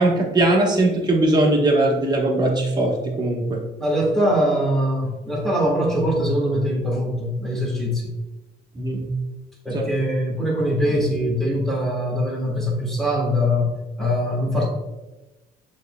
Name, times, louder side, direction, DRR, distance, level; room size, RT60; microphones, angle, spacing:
voice 1, 0.0-3.6 8.7-9.1 9.7-9.9, right 2 dB, 25° right, -1 dB, 1.1 m, -20 dB
voice 2, 3.8-8.1 9.6-14.7, equal, ahead, -3 dB, 1.5 m, -22 dB
6.5 x 3.1 x 2.2 m, 1.1 s
cardioid pair, 110°, 17 cm